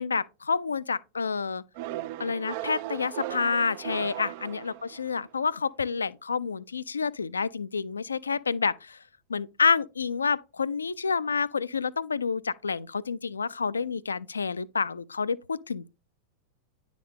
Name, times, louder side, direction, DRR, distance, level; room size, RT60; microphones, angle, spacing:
voice 1, 0.0-1.6 2.2-9.0 9.3-15.9, left 5 dB, 75° left, 0.3 m, -29 dB
sound 1, 1.8-5.3, right 15 dB, 50° right, 0.3 m, -37 dB
9.8 x 4.1 x 3.1 m
figure-of-eight pair, 90°, 0 cm